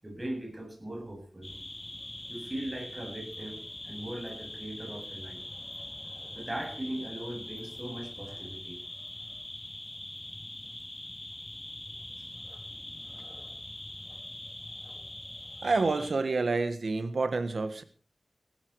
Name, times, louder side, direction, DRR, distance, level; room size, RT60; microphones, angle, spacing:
voice 1, 0.0-1.5 2.3-5.4 6.3-8.8, right 1 dB, 30° right, 3 dB, 8.0 m, -39 dB
sound 1, 1.4-16.1, left 1 dB, 25° left, 3.6 m, -43 dB
voice 2, 15.6-17.8, right 3 dB, 85° right, 10 dB, 1.6 m, -28 dB
17.0 x 14.5 x 4.8 m, 0.40 s
wide cardioid pair, 50°, 0 cm